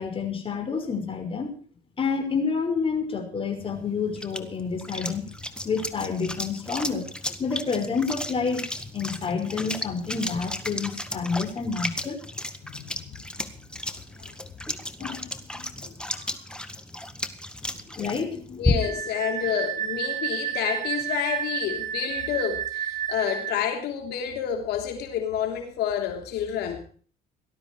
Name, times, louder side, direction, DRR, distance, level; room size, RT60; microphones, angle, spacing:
voice 1, 0.0-1.6 2.0-5.2 5.6-7.1 7.4-8.7 8.9-12.2 17.7-18.8, left 5 dB, 30° left, 4 dB, 5.6 m, -29 dB
sound 1, 3.6-19.1, left 1 dB, 5° left, 1.8 m, -34 dB
voice 2, 12.6-13.1 14.2-14.3 15.0-16.4 18.6-26.8, left 9 dB, 75° left, 4 dB, 3.2 m, -30 dB
Wind instrument woodwind instrument, 18.8-23.6, right 10 dB, 50° right, 2.6 m, -31 dB
18.5 x 13.0 x 4.7 m, 0.43 s
cardioid pair, 110°, 17 cm